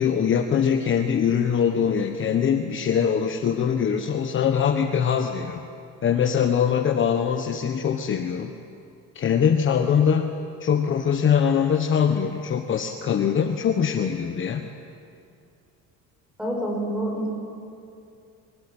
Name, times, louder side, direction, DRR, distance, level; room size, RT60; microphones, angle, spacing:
voice 1, 0.0-5.7 6.0-8.5 9.1-10.3 10.6-14.6, left 7 dB, 35° left, 6 dB, 1.3 m, -22 dB
voice 2, 16.4-17.3, right 1 dB, 5° right, -1 dB, 7.6 m, -27 dB
25.0 x 22.5 x 9.0 m, 2.6 s
cardioid pair, 130°, 33 cm